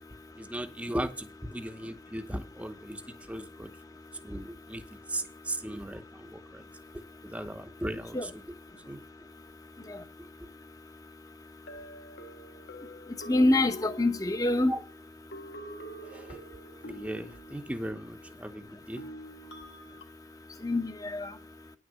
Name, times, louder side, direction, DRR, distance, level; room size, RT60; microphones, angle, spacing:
voice 1, 0.4-3.0 3.3-3.7 4.2-4.8 5.1-6.6 7.2-8.2 8.9-9.0 14.7-14.8 16.1-16.4 16.9-18.6 18.9-19.0, right 1 dB, 5° right, 0.8 m, -37 dB
sound 1, 10.5-10.6 11.7-14.8 15.3-17.9 19.0-20.0, equal, 80° left, 1.8 m, -46 dB
voice 2, 13.3-14.7 20.6-21.3, left 2 dB, 20° left, 0.8 m, -25 dB
10.0 x 6.3 x 7.4 m
head